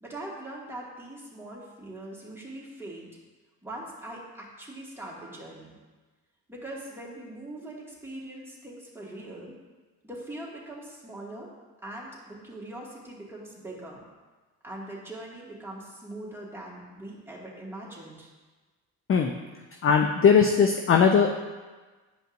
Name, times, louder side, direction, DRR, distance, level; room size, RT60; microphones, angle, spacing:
voice 1, 0.0-3.1 3.6-5.7 6.5-9.5 10.0-11.5 11.8-14.1 14.6-18.3, right 1 dB, 5° right, -5 dB, 2.2 m, -41 dB
voice 2, 19.8-21.3, left 6 dB, 30° left, 4 dB, 0.5 m, -19 dB
10.5 x 5.1 x 2.6 m, 1.3 s
hypercardioid pair, 60°, 45 cm